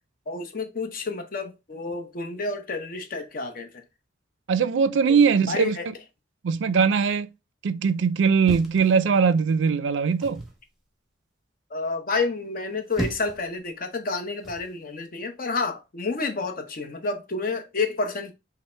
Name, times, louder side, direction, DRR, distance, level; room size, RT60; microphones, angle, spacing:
voice 1, 0.3-3.8 5.5-5.9 11.7-18.3, left 3 dB, 50° left, 0.7 m, -29 dB
voice 2, 4.5-5.8 6.4-7.3 7.6-10.4, right 5 dB, 85° right, 0.4 m, -21 dB
sound 1, 8.4-9.5 10.2-10.6 12.6-13.5 14.4-14.7, right 1 dB, ahead, 0.9 m, -35 dB
5.6 x 2.0 x 3.1 m
head